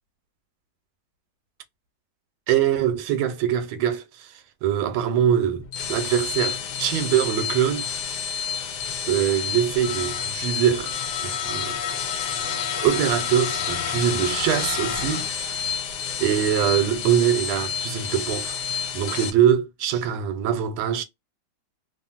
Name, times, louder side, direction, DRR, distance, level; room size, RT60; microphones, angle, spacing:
voice 1, 2.5-5.6 5.9-8.3 9.1-10.9 11.2-11.8 12.4-15.8 16.2-21.0, right 9 dB, 85° right, 1.4 m, -23 dB
sound 1, 5.6-19.3, left 7 dB, 70° left, 1.1 m, -29 dB
3.2 x 2.5 x 2.3 m
omnidirectional pair, 2.2 m